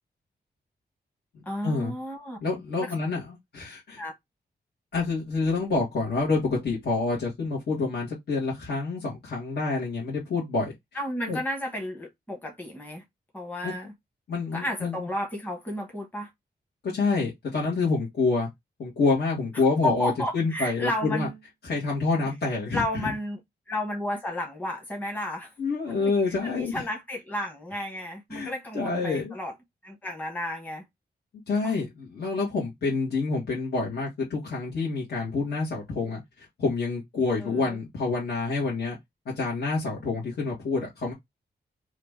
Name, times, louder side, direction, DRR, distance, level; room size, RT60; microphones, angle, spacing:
voice 1, 1.4-2.4 2.8-2.9 4.0-4.1 10.9-13.0 13.3-13.9 14.5-16.3 19.5-21.3 22.7-23.4 23.7-25.5 26.0-29.5 29.8-30.8 31.6-31.7 37.4-37.8, left 1 dB, 10° left, 1.1 m, -32 dB
voice 2, 2.4-4.0 4.9-10.7 11.3-11.4 13.6-13.7 14.3-15.0 16.9-18.5 18.8-21.3 21.6-23.1 25.6-26.8 28.3-29.3 31.5-39.0 39.4-41.1, left 3 dB, 70° left, 1.4 m, -27 dB
2.9 x 2.5 x 3.4 m
wide cardioid pair, 120°, 18 cm